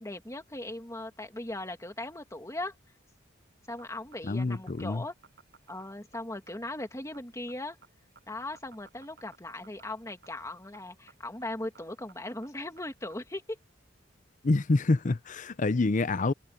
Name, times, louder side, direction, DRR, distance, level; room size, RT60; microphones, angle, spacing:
voice 1, 0.0-2.7 3.7-5.1 5.7-7.8 8.3-13.6, left 1 dB, 15° left, 2.3 m, -38 dB
sound 1, 3.6-13.3, right 5 dB, 60° right, 7.8 m, -58 dB
voice 2, 4.2-5.0 14.4-16.3, left 3 dB, 40° left, 0.6 m, -27 dB
head